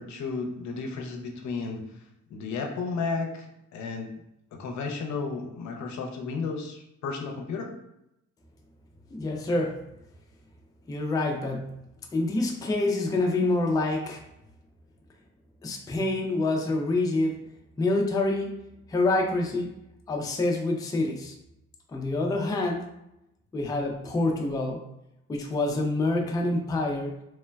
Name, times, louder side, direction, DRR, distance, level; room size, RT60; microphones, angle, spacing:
voice 1, 0.0-2.0 2.3-4.1 4.5-7.7, left 4 dB, 70° left, 2 dB, 0.6 m, -33 dB
voice 2, 9.1-9.8 10.9-11.7 12.1-14.2 15.6-17.3 17.8-19.8 20.1-21.3 21.9-22.9 23.5-24.8 25.3-27.1, left 2 dB, 15° left, 1 dB, 0.4 m, -27 dB
3.1 x 2.1 x 2.2 m, 0.84 s
cardioid pair, 90°, 30 cm